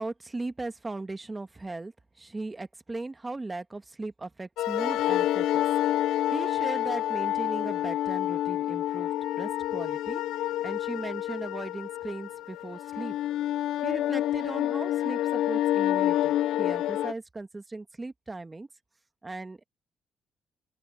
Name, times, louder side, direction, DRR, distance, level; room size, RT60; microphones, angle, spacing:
voice 1, 0.0-5.6 5.9-9.1 9.4-13.2 13.8-18.7 19.2-19.7, right 2 dB, 20° right, 1.5 m, -38 dB
sound 1, 4.6-17.1, left 13 dB, 90° left, 0.5 m, -28 dB
open air
cardioid pair, 90°, 0 cm